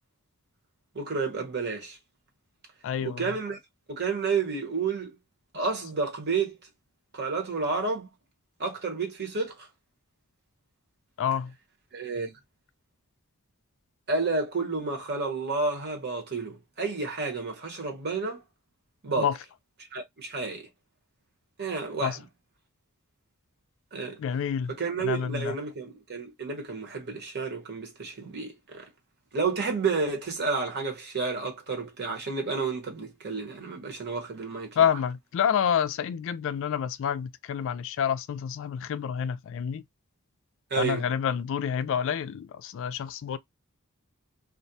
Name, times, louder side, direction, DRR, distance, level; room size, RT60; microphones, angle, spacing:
voice 1, 0.9-2.0 3.0-3.6 3.9-5.1 5.5-6.6 7.1-8.1 8.6-9.7 11.9-12.3 14.1-18.4 19.0-19.3 19.9-20.7 21.6-22.1 23.9-24.2 24.8-28.8 29.3-34.8 40.7-41.1, right 4 dB, 50° right, 0.9 m, -30 dB
voice 2, 2.8-3.4 11.2-11.5 19.2-19.4 22.0-22.2 24.2-25.6 34.8-39.8 40.8-43.4, left 8 dB, 65° left, 0.3 m, -28 dB
2.4 x 2.1 x 2.6 m
head